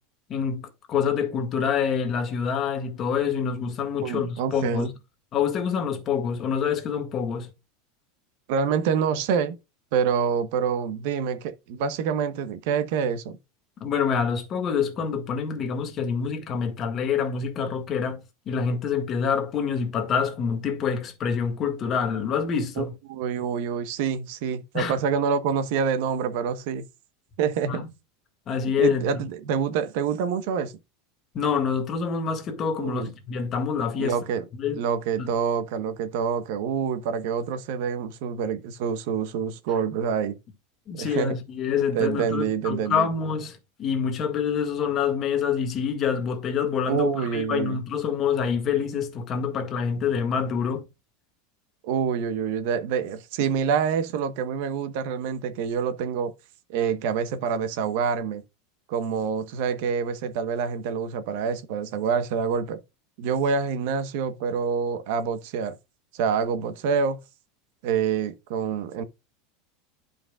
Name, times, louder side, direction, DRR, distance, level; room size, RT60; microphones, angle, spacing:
voice 1, 0.3-4.9 5.3-7.5 13.8-18.2 18.4-22.9 24.7-25.0 27.7-27.9 28.5-29.2 31.3-34.2 34.6-34.8 35.2-35.3 40.9-50.9, left 6 dB, 35° left, 1.7 m, -26 dB
voice 2, 4.0-4.9 8.5-9.6 9.9-13.4 22.8-26.9 27.4-27.8 28.8-30.7 32.8-33.1 34.0-34.4 34.8-40.4 41.0-41.4 41.9-43.1 46.9-47.8 51.8-56.3 56.7-58.4 58.9-62.8 63.2-65.8 66.1-67.2 67.8-69.0, right 7 dB, 65° right, 1.0 m, -26 dB
11.5 x 5.3 x 2.3 m
supercardioid pair, 135°, 0 cm